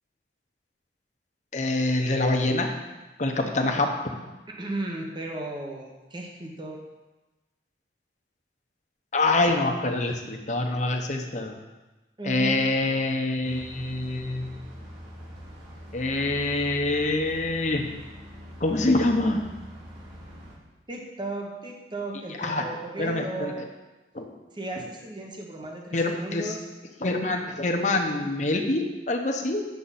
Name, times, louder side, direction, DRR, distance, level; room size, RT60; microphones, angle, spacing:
voice 1, 1.5-2.9 3.2-4.0 9.1-11.5 12.2-14.5 15.9-17.9 18.6-19.5 22.4-22.7 23.0-23.6 24.1-24.2 25.9-26.5 27.0-29.6, left 2 dB, 40° left, 3 dB, 1.0 m, -25 dB
voice 2, 4.5-6.8 12.2-12.7 20.9-23.7 24.5-26.6, right 2 dB, 25° right, 0 dB, 1.1 m, -35 dB
sound 1, 13.4-20.6, equal, 80° right, 2.4 m, -44 dB
9.4 x 7.5 x 4.2 m, 1.1 s
head